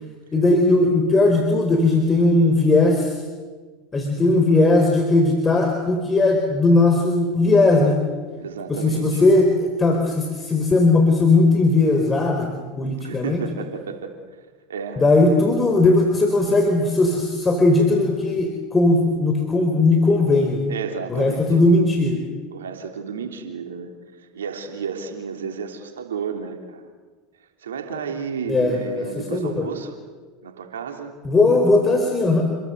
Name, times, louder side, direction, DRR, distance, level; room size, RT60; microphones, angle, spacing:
voice 1, 0.3-3.2 3.9-8.0 8.7-12.5 12.8-13.4 15.0-20.6 21.1-22.2 28.5-29.0 29.3-29.7 31.2-32.4, left 2 dB, 20° left, 3 dB, 4.7 m, -18 dB
voice 2, 8.4-9.2 13.0-14.1 14.7-15.0 15.3-15.4 20.3-21.5 22.5-26.9 27.6-29.9 30.4-31.1, right 6 dB, 80° right, 5 dB, 3.3 m, -32 dB
29.5 x 23.0 x 8.2 m, 1.4 s
hypercardioid pair, 85°, 0 cm